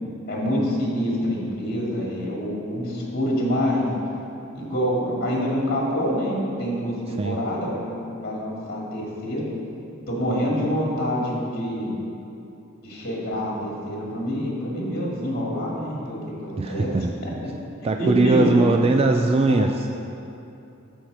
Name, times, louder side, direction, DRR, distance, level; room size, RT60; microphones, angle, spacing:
voice 1, 0.3-3.8 4.5-9.4 10.1-11.9 12.8-16.2 16.4-16.9 17.2-17.5 18.0-18.6 19.4-19.7, equal, 50° left, -3 dB, 2.3 m, -26 dB
voice 2, 16.6-17.1 17.8-19.9, right 3 dB, 30° right, 4 dB, 0.3 m, -20 dB
12.0 x 4.5 x 6.6 m, 2.8 s
head